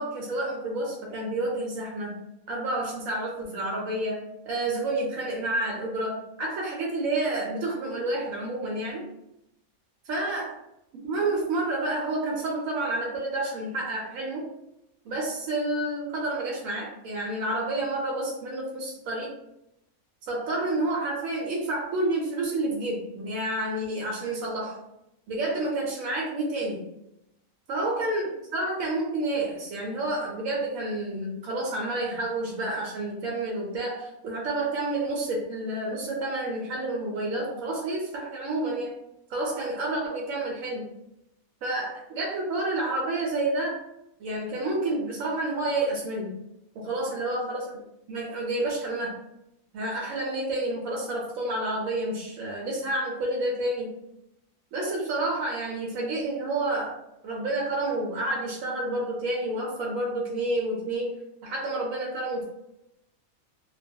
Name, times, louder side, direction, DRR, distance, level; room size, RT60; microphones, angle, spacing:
voice 1, 0.0-2.2 2.5-9.1 10.0-10.5 11.0-14.5 15.0-19.3 20.3-24.8 25.3-26.9 27.7-38.9 39.3-40.8 41.6-43.8 44.2-46.4 46.7-47.6 48.1-49.2 49.7-53.9 54.7-57.0 57.2-61.1 61.4-62.4, right 2 dB, 75° right, -3 dB, 1.0 m, -29 dB
2.3 x 2.2 x 2.6 m, 0.84 s
omnidirectional pair, 1.5 m